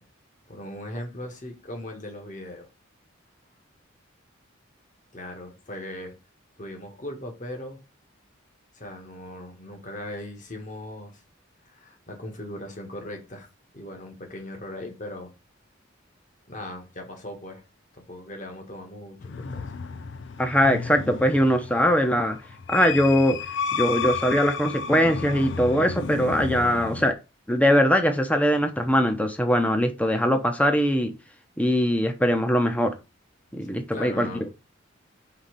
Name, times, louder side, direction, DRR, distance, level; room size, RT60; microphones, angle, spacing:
voice 1, 0.5-2.7 5.1-6.1 6.6-7.8 8.7-11.2 11.6-13.5 13.7-15.3 16.5-17.6 17.9-19.7 24.7-24.8 33.9-34.5, left 1 dB, 40° left, 1.9 m, -38 dB
sound 1, 19.2-27.1, left 5 dB, 65° left, 0.5 m, -32 dB
voice 2, 20.4-22.4 22.7-23.4 23.7-27.2 27.5-31.1 31.6-32.9 33.5-34.3, equal, 5° left, 0.9 m, -21 dB
5.8 x 3.9 x 5.3 m
head